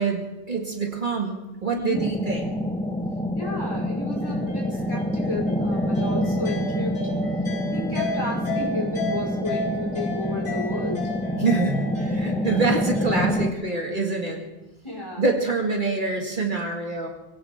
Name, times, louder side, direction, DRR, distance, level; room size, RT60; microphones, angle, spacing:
voice 1, 0.0-2.5 11.4-14.4 15.2-17.1, right 3 dB, 45° right, 1 dB, 2.3 m, -26 dB
voice 2, 1.7-2.0 3.3-7.0 7.7-11.0 14.8-15.2, left 2 dB, 25° left, -4 dB, 5.0 m, -32 dB
sound 1, 1.9-13.5, left 1 dB, 5° left, 0.9 m, -27 dB
sound 2, 4.2-13.2, left 1 dB, 70° left, 5.2 m, -34 dB
24.0 x 17.0 x 3.6 m, 1.0 s
omnidirectional pair, 1.2 m